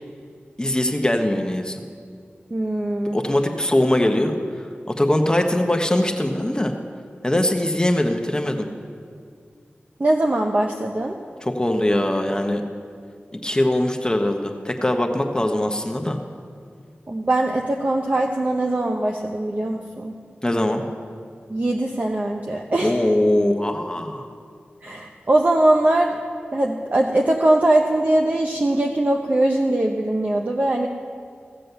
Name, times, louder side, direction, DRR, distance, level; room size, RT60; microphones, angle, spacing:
voice 1, 0.6-1.8 3.1-4.7 5.0-6.7 7.2-8.7 11.4-12.6 13.3-16.2 20.4-20.8 22.8-24.3, left 1 dB, 20° left, 4 dB, 1.0 m, -21 dB
voice 2, 2.5-3.2 10.0-11.2 17.1-20.1 21.5-22.9 24.8-26.2 26.5-30.9, right 1 dB, 40° right, 1 dB, 0.8 m, -21 dB
15.5 x 7.6 x 6.8 m, 2.2 s
wide cardioid pair, 65°, 4 cm